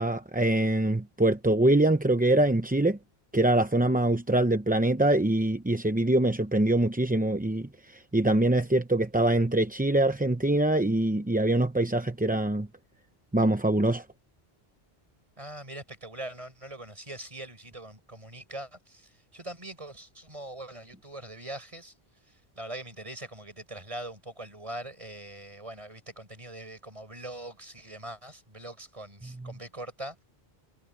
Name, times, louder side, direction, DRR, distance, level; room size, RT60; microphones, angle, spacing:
voice 1, 0.0-3.0 3.3-12.7 13.3-14.0, right 1 dB, 10° right, 0.6 m, -24 dB
voice 2, 15.4-21.9 22.3-30.2, right 1 dB, 30° right, 5.8 m, -42 dB
omnidirectional pair, 1.0 m